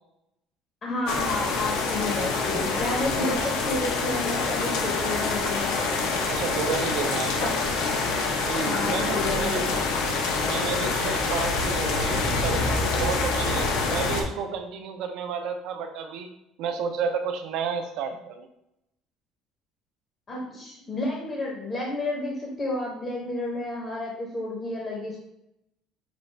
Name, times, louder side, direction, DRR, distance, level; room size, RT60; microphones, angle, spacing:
voice 1, 0.8-5.8 8.6-9.8 20.3-25.2, left 2 dB, 25° left, -2 dB, 0.7 m, -31 dB
sound 1, 1.1-14.2, left 3 dB, 85° left, 0.7 m, -26 dB
voice 2, 6.3-7.5 8.3-9.6 10.4-16.3 16.6-18.5, right 6 dB, 60° right, 6 dB, 0.6 m, -31 dB
5.9 x 2.5 x 3.2 m, 0.82 s
cardioid pair, 170°, 0 cm